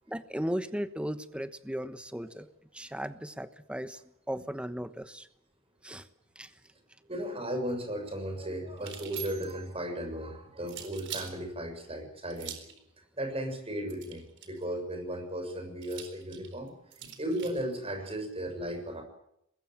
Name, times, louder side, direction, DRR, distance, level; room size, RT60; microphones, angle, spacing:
voice 1, 0.1-2.5 2.7-4.0 4.3-5.3 5.8-6.1 6.4-6.5, equal, 5° right, 11 dB, 1.1 m, -36 dB
voice 2, 7.1-12.5 13.2-16.7 17.2-19.0, right 1 dB, 30° right, 6 dB, 6.9 m, -35 dB
sound 1, 8.8-9.7 10.7-11.3 12.3-12.8 13.9-14.6 15.8-17.6, right 9 dB, 60° right, 4.3 m, -43 dB
24.0 x 21.0 x 7.7 m, 0.76 s
head